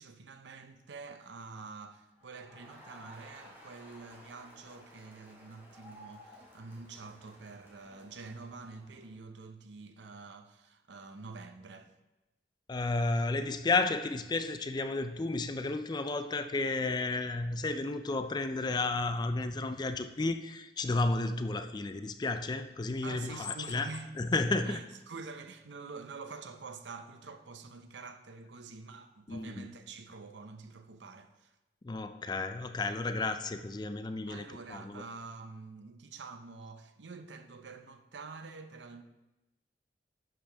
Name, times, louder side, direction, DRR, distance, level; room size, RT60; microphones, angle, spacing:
voice 1, 0.0-11.9 23.0-24.1 24.6-31.5 34.3-39.0, right 4 dB, 80° right, 0.7 m, -47 dB
Crowd, 2.2-9.2, equal, 10° right, 1.9 m, -56 dB
voice 2, 12.7-23.9 24.2-24.8 29.3-29.7 31.8-35.0, left 3 dB, 25° left, 0.4 m, -32 dB
10.5 x 6.8 x 3.4 m
head